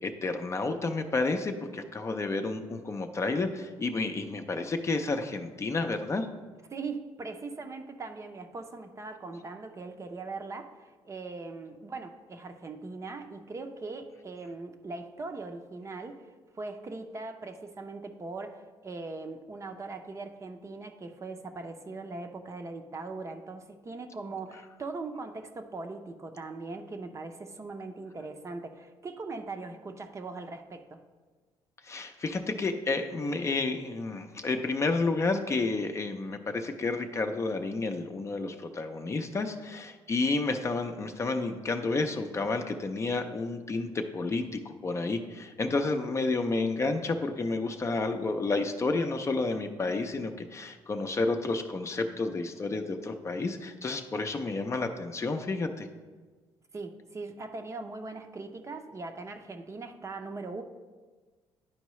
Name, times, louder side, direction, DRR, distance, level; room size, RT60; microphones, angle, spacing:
voice 1, 0.0-6.3 31.8-55.9, left 3 dB, 30° left, 6 dB, 0.6 m, -30 dB
voice 2, 6.7-16.3 16.5-31.0 56.7-60.6, right 3 dB, 30° right, 6 dB, 0.6 m, -40 dB
10.5 x 4.5 x 3.1 m, 1.4 s
cardioid pair, 95°, 10 cm